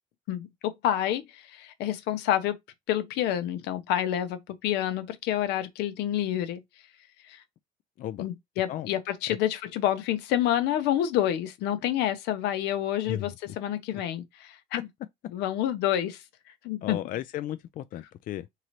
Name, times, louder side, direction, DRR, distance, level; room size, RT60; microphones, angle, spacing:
voice 1, 0.3-2.6 2.9-6.6 7.3-7.4 8.2-14.9 15.3-16.2 16.6-17.0, left 11 dB, 90° left, 0.8 m, -28 dB
voice 2, 13.0-13.6 16.8-18.5, left 12 dB, 55° left, 0.4 m, -35 dB
3.8 x 2.8 x 3.1 m
cardioid pair, 110°, 17 cm